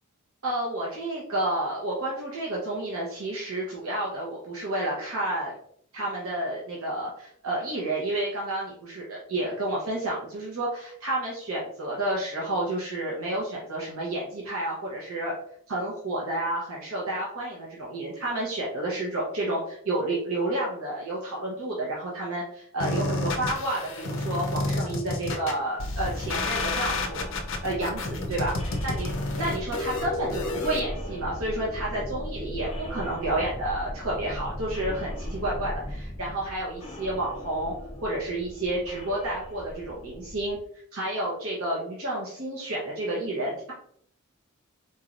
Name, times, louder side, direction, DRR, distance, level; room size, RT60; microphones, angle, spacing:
voice 1, 0.4-5.5 5.9-15.4 15.7-27.3 27.6-28.5 28.8-29.1 29.4-37.7 38.0-40.6 40.9-43.7, right 1 dB, 80° right, -5 dB, 0.9 m, -30 dB
sound 1, 22.8-30.8, left 2 dB, 60° left, 0.6 m, -30 dB
sound 2, 26.2-40.6, equal, 30° left, 0.8 m, -38 dB
4.1 x 3.1 x 2.5 m, 0.66 s
head